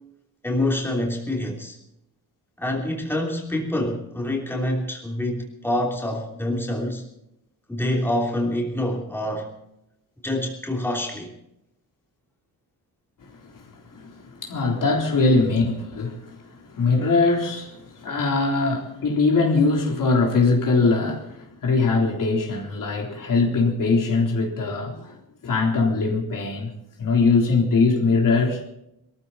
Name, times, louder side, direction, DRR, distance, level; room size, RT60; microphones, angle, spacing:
voice 1, 0.4-1.8 2.6-7.0 7.7-9.5 10.2-11.4, left 1 dB, 5° left, 3.2 m, -26 dB
voice 2, 13.9-25.2 25.4-26.7 27.0-28.6, left 3 dB, 55° left, 3.7 m, -22 dB
21.5 x 14.5 x 4.1 m
cardioid pair, 120°, 38 cm